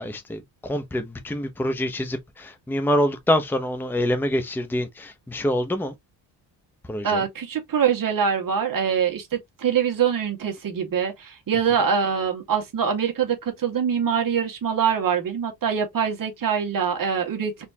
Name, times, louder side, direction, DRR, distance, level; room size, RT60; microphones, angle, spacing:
voice 1, 0.0-5.9 6.9-7.2, equal, 5° left, 0.8 m, -26 dB
voice 2, 7.0-17.5, right 7 dB, 45° right, 1.8 m, -24 dB
4.3 x 3.5 x 2.8 m
cardioid pair, 105°, 46 cm